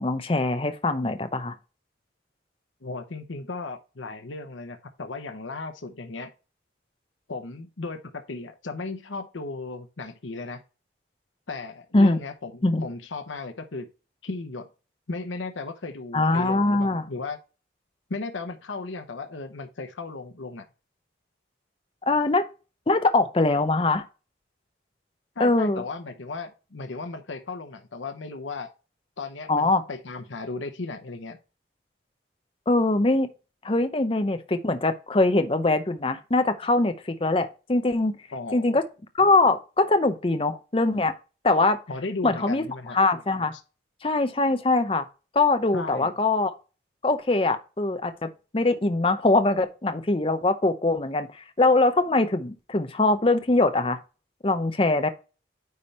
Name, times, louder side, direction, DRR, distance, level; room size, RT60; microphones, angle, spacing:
voice 1, 0.0-1.5 11.9-12.2 12.6-12.8 16.1-17.0 22.1-22.4 22.9-24.0 25.4-25.8 29.5-29.8 32.7-33.3 33.6-38.2 38.5-38.8 39.2-41.1 41.4-41.8 42.2-42.6 42.9-43.5 44.0-45.1 45.3-46.5 47.0-54.0 54.4-55.1, left 2 dB, 30° left, 0.6 m, -22 dB
voice 2, 2.8-6.3 7.3-10.6 11.5-13.9 14.2-14.7 15.1-17.4 18.1-20.7 25.4-28.7 29.2-31.4 38.3-38.8 41.9-43.0 43.5-43.6 45.7-46.1, left 3 dB, 85° left, 1.0 m, -35 dB
9.5 x 3.4 x 4.1 m
head